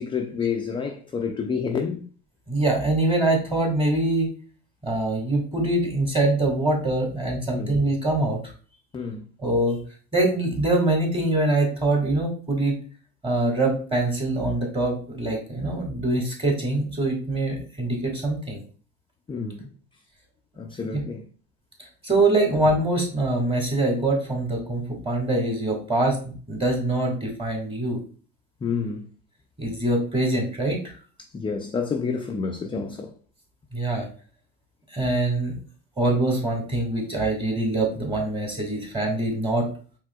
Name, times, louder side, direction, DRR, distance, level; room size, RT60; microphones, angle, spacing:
voice 1, 0.0-2.1 7.5-7.8 8.9-9.2 19.3-19.7 20.6-21.3 28.6-29.1 31.3-33.1, left 5 dB, 15° left, 0.3 m, -29 dB
voice 2, 2.5-4.3 4.8-8.4 9.4-9.8 10.1-12.7 13.2-18.6 20.9-21.0 22.0-28.0 29.6-30.8 33.7-34.1 34.9-35.5 36.0-39.7, right 2 dB, 15° right, 1.7 m, -24 dB
4.7 x 3.5 x 2.3 m
supercardioid pair, 90°, 32 cm